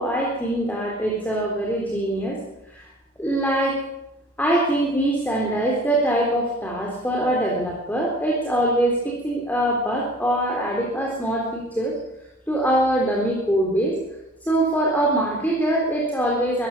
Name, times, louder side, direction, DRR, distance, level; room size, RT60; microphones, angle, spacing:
voice 1, 0.0-2.4 2.7-2.9 3.2-3.8 4.4-12.0 12.5-14.0 14.4-16.7, right 1 dB, 10° left, -2 dB, 3.7 m, -23 dB
24.5 x 14.5 x 7.3 m, 0.90 s
head